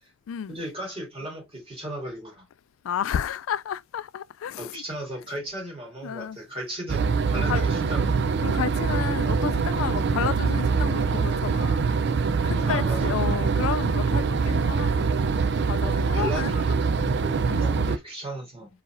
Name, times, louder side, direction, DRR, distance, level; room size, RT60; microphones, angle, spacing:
voice 1, 0.5-2.4 4.6-8.3 12.6-13.2 15.8-18.7, right 1 dB, 30° right, 3.0 m, -36 dB
voice 2, 2.8-4.8 6.0-6.4 7.5-7.7 8.4-11.8 12.4-15.1 15.7-16.5 17.4-17.9, left 8 dB, 85° left, 0.3 m, -31 dB
sound 1, 6.9-18.0, right 5 dB, 55° right, 0.5 m, -24 dB
4.7 x 4.1 x 2.5 m
head